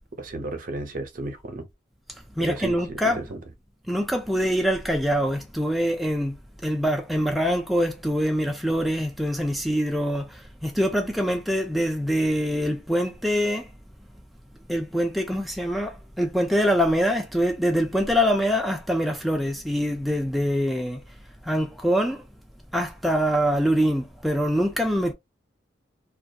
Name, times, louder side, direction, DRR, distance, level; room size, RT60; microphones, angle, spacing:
voice 1, 0.2-1.7 2.4-3.4, right 2 dB, 50° right, 0.6 m, -33 dB
voice 2, 2.4-3.2 3.9-6.4 6.6-13.7 14.7-21.0 21.4-22.3 22.7-25.1, equal, ahead, 0.3 m, -24 dB
2.5 x 2.3 x 2.3 m
head